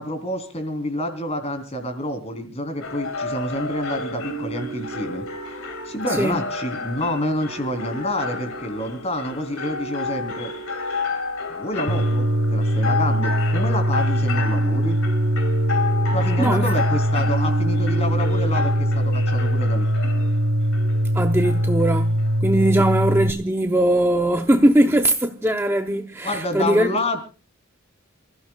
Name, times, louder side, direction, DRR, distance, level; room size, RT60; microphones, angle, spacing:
voice 1, 0.0-5.2 5.8-10.5 11.5-15.0 16.1-19.9 22.7-22.8 26.2-27.2, left 1 dB, 30° left, 3.4 m, -28 dB
sound 1, 2.8-22.4, left 2 dB, 70° left, 2.7 m, -30 dB
sound 2, 11.9-23.3, equal, 90° right, 1.5 m, -21 dB
voice 2, 16.4-16.7 21.1-26.9, right 1 dB, 10° right, 0.7 m, -20 dB
28.5 x 15.5 x 2.3 m
head